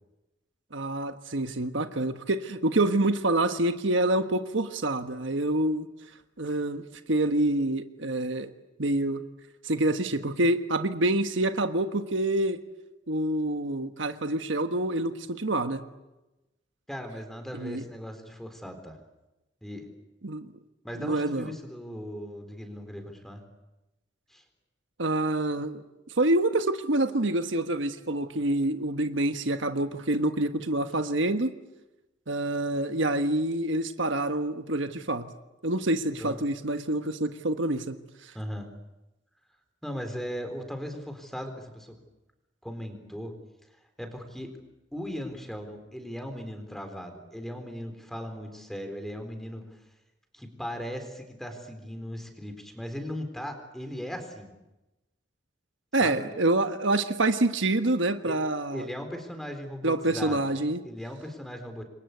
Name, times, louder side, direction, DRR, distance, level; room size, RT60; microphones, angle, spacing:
voice 1, 0.7-5.9 6.4-8.5 8.8-9.2 9.6-12.6 13.1-15.8 17.6-17.8 20.2-20.5 21.0-21.5 25.0-25.8 26.2-31.5 32.3-35.3 35.6-38.0 55.9-58.9 59.8-60.8, right 2 dB, 80° right, 8 dB, 1.4 m, -27 dB
voice 2, 16.9-19.0 19.6-19.9 20.8-23.4 24.3-24.4 36.2-36.4 38.3-38.7 39.8-42.0 42.6-43.3 44.0-44.5 44.9-49.8 50.3-54.5 56.0-56.3 58.2-58.3 58.7-60.5 60.8-61.8, equal, ahead, 6 dB, 3.9 m, -38 dB
28.0 x 23.0 x 8.4 m, 1.0 s
head